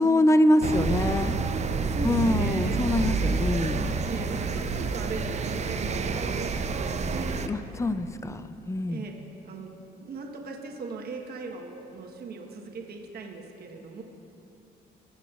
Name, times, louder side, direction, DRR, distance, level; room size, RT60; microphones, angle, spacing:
voice 1, 0.0-1.3 2.0-3.8 7.5-8.4 8.7-9.0, left 1 dB, 15° left, 12 dB, 0.5 m, -24 dB
sound 1, 0.6-7.5, right 4 dB, 35° right, 0.5 m, -28 dB
voice 2, 1.7-2.8 4.0-7.8 8.9-9.1 9.4-14.0, right 3 dB, 55° right, 1 dB, 1.1 m, -39 dB
17.5 x 7.0 x 2.4 m, 2.9 s
supercardioid pair, 70°, 19 cm